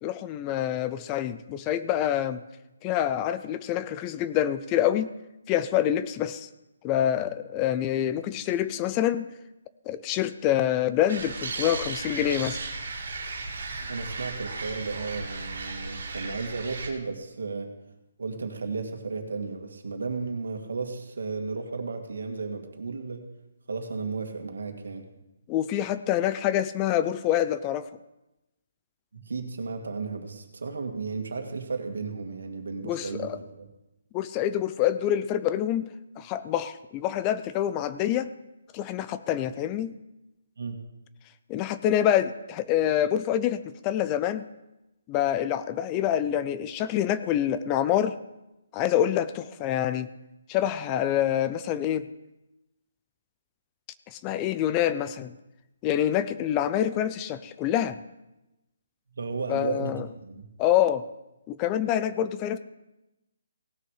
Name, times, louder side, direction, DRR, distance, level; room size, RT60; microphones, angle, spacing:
voice 1, 0.0-2.4 2.8-5.1 5.5-6.5 6.8-9.3 9.9-12.6 25.5-27.8 32.8-33.4 34.1-35.9 36.2-38.3 38.7-39.9 41.5-44.5 45.1-48.1 48.7-50.1 50.5-52.1 54.1-55.3 55.8-58.0 59.5-60.1 60.6-61.1 61.5-62.6, left 11 dB, 15° left, 13 dB, 0.4 m, -26 dB
sound 1, 11.1-16.9, right 3 dB, 65° right, 2.4 m, -35 dB
voice 2, 13.9-17.7 18.2-23.2 23.7-25.1 29.1-33.7 40.6-40.8 59.2-60.5, right 4 dB, 80° right, 5 dB, 1.9 m, -34 dB
18.0 x 6.4 x 4.8 m, 0.94 s
hypercardioid pair, 170°, 0 cm